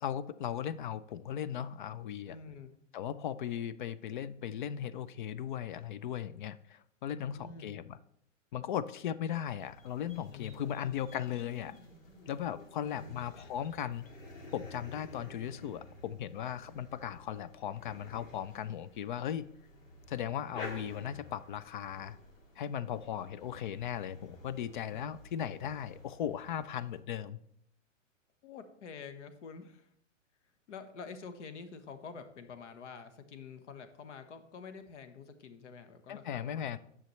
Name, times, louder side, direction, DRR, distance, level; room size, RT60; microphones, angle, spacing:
voice 1, 0.0-2.4 2.9-8.0 8.5-11.8 12.3-14.1 14.5-19.5 20.1-22.2 22.6-27.4 36.1-36.8, left 9 dB, 40° left, 16 dB, 0.4 m, -37 dB
voice 2, 2.3-2.7 7.0-7.9 10.3-11.0 12.7-13.2 24.9-25.2 28.4-29.9 30.7-36.8, left 5 dB, 65° left, 9 dB, 1.2 m, -48 dB
sound 1, 9.3-27.0, left 2 dB, 80° left, 2.4 m, -52 dB
10.0 x 6.9 x 3.1 m, 0.71 s
hypercardioid pair, 125°, 39 cm